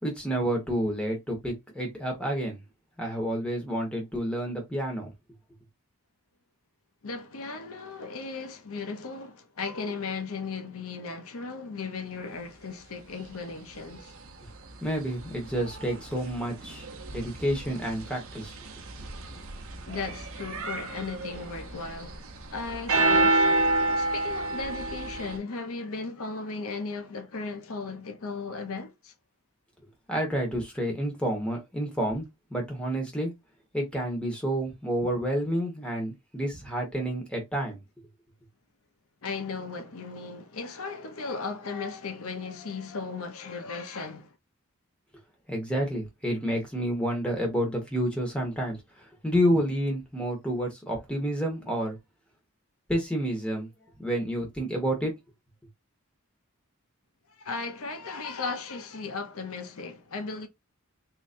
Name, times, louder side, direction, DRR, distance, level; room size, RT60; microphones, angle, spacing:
voice 1, 0.0-2.6 3.0-5.1 14.8-18.5 30.1-32.2 32.5-33.3 33.7-37.8 45.5-52.0 52.9-53.7 54.0-55.1, equal, 5° left, 1.3 m, -29 dB
voice 2, 7.0-14.1 19.9-23.5 24.0-29.1 39.2-44.3 57.4-60.5, left 4 dB, 70° left, 0.7 m, -36 dB
sound 1, 13.2-13.3 13.9-25.4, right 2 dB, 65° right, 0.8 m, -30 dB
3.8 x 3.1 x 2.5 m
head